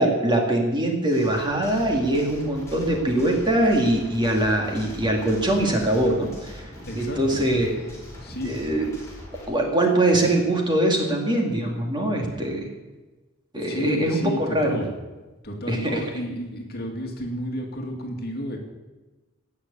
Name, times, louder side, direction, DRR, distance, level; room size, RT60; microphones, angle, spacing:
voice 1, 0.0-6.7 7.0-7.8 8.4-8.9 9.5-12.7 13.5-14.8 15.7-16.0, right 1 dB, 20° right, 1 dB, 2.4 m, -22 dB
sound 1, 1.1-9.5, left 1 dB, 15° left, 4.8 m, -41 dB
voice 2, 6.9-7.4 8.2-8.5 13.6-14.9 15.4-18.6, equal, 50° left, 2 dB, 2.3 m, -32 dB
17.5 x 6.6 x 8.3 m, 1.2 s
head